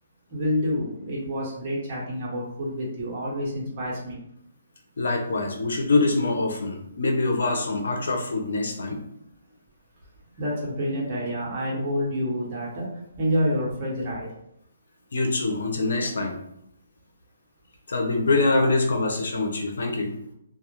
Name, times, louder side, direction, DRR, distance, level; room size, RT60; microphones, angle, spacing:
voice 1, 0.3-4.2 10.4-14.3 16.0-16.3 18.4-18.7, equal, 35° right, -4 dB, 0.9 m, -28 dB
voice 2, 5.0-9.0 15.1-16.4 17.9-20.1, left 3 dB, 75° left, 3 dB, 0.5 m, -24 dB
2.2 x 2.0 x 2.9 m, 0.74 s
hypercardioid pair, 160°, 0 cm